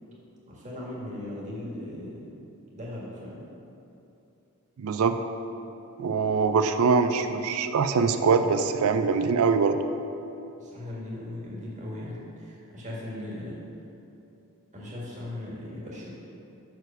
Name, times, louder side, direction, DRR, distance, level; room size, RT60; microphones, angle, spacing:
voice 1, 0.5-2.4 2.7-3.4 10.6-13.6 14.7-16.1, left 1 dB, 35° right, -5 dB, 1.6 m, -38 dB
voice 2, 4.8-5.2 6.0-9.8, right 5 dB, 70° right, 8 dB, 0.4 m, -23 dB
6.1 x 4.7 x 6.6 m, 2.8 s
head